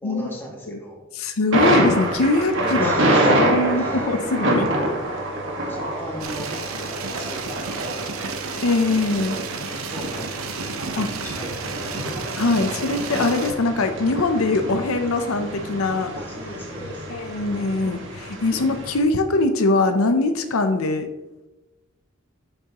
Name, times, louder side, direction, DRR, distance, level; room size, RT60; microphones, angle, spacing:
voice 1, 0.0-1.0 2.6-3.3 3.7-4.1 5.6-8.4 9.6-12.1 16.1-17.1, equal, 10° left, -4 dB, 2.3 m, -38 dB
voice 2, 1.1-3.0 3.3-4.7 8.6-9.4 11.0-11.1 12.4-16.1 17.1-21.1, left 2 dB, 85° left, 7 dB, 0.7 m, -22 dB
Thunder, 1.5-19.0, right 1 dB, 60° right, 1.7 m, -26 dB
sound 1, 6.2-13.5, right 5 dB, 90° right, 0.8 m, -32 dB
10.0 x 7.8 x 3.0 m, 1.1 s
head